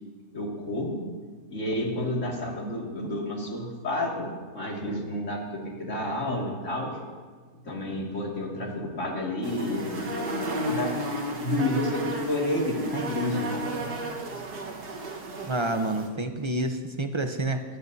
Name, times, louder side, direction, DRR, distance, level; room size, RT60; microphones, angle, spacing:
voice 1, 0.3-1.0 1.5-7.0 7.7-10.9 11.4-13.6, left 1 dB, 50° left, -2 dB, 2.7 m, -30 dB
sound 1, 9.4-16.1, right 1 dB, 90° right, 2.0 m, -33 dB
voice 2, 15.5-17.6, right 2 dB, 30° right, 6 dB, 0.6 m, -28 dB
21.0 x 14.0 x 2.8 m, 1.5 s
omnidirectional pair, 1.6 m